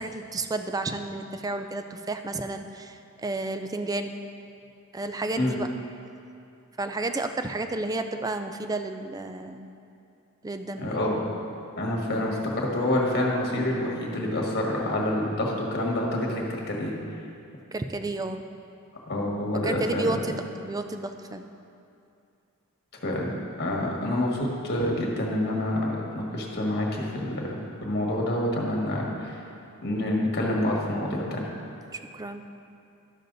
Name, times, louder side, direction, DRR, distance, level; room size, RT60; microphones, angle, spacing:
voice 1, 0.0-4.1 4.9-5.7 6.8-9.7 10.4-11.0 17.7-18.4 19.6-21.4 32.1-32.4, right 2 dB, 15° right, 7 dB, 0.4 m, -31 dB
voice 2, 10.7-11.2 11.8-16.9 19.1-20.2 23.0-23.3 23.6-29.4 29.8-31.5, left 1 dB, 50° left, -1 dB, 1.5 m, -27 dB
11.5 x 6.7 x 4.0 m, 2.6 s
head